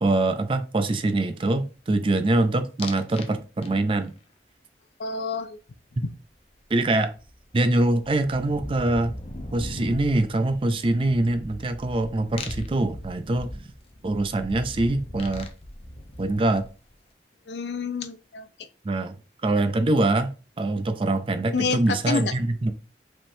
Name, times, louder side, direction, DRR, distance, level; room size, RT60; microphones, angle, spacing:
voice 1, 0.0-4.1 6.0-6.1 6.7-7.1 7.5-9.2 9.5-13.6 14.0-15.5 16.2-16.7 18.8-19.2 19.4-22.7, right 2 dB, 30° right, 0.4 m, -24 dB
sound 1, 2.8-3.3 3.6-4.1 6.5-6.6 6.9-16.9, left 1 dB, 35° left, 0.6 m, -39 dB
voice 2, 5.0-5.6 6.0-6.1 17.5-18.5 21.5-22.3, left 4 dB, 75° left, 0.5 m, -28 dB
5.2 x 3.6 x 2.6 m
head